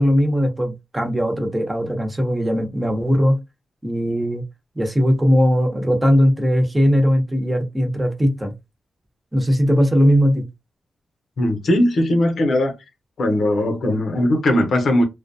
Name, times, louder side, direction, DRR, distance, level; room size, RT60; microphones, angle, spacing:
voice 1, 0.0-3.4 3.8-4.4 4.8-8.5 9.3-10.4, equal, 20° right, 0.9 m, -19 dB
voice 2, 11.4-12.7 13.2-15.0, left 1 dB, 70° left, 0.7 m, -19 dB
2.3 x 2.1 x 2.7 m
supercardioid pair, 45°, 0 cm